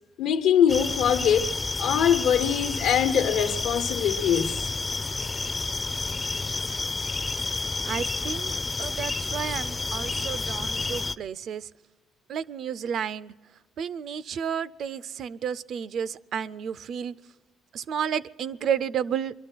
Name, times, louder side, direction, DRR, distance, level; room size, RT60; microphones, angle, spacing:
voice 1, 0.2-1.5 1.8-4.6, left 8 dB, 85° left, 1.0 m, -23 dB
sound 1, 0.7-11.2, left 3 dB, 25° left, 0.4 m, -30 dB
voice 2, 7.9-8.5 8.8-11.7 12.3-13.3 13.8-17.1 17.7-19.3, right 8 dB, 60° right, 0.4 m, -31 dB
22.5 x 12.5 x 4.5 m
cardioid pair, 115°, 0 cm